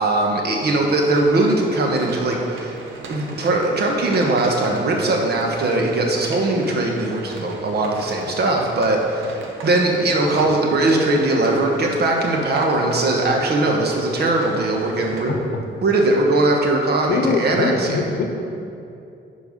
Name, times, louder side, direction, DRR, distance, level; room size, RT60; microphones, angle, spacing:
voice 1, 0.0-2.8 3.1-15.3 15.8-18.1, right 2 dB, 55° right, 1 dB, 1.4 m, -20 dB
sound 1, 1.0-15.3, right 3 dB, 85° right, 1.0 m, -39 dB
voice 2, 17.1-18.2, left 4 dB, 50° left, 4 dB, 0.9 m, -22 dB
9.4 x 4.7 x 5.4 m, 2.7 s
cardioid pair, 90°, 20 cm